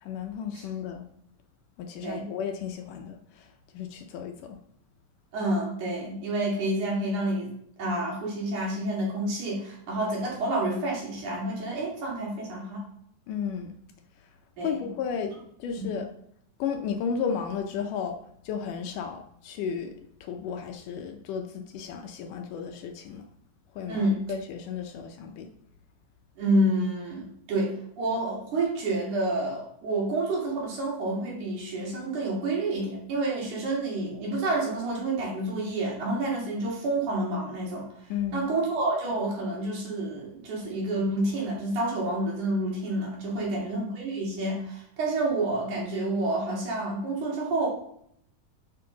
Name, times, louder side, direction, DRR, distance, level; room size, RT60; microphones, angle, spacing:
voice 1, 0.0-1.1 1.8-3.5 3.7-4.6 13.3-13.8 14.6-15.3 15.6-16.1 16.6-18.2 18.4-19.9 20.2-23.3 23.7-25.5 38.1-38.5 43.4-43.7, left 7 dB, 75° left, 5 dB, 2.1 m, -33 dB
voice 2, 5.3-7.5 7.8-12.8 14.6-14.8 15.8-16.0 23.9-24.2 26.4-37.9 38.3-47.7, right 2 dB, 60° right, -4 dB, 3.9 m, -29 dB
10.5 x 5.8 x 3.9 m, 0.70 s
omnidirectional pair, 4.1 m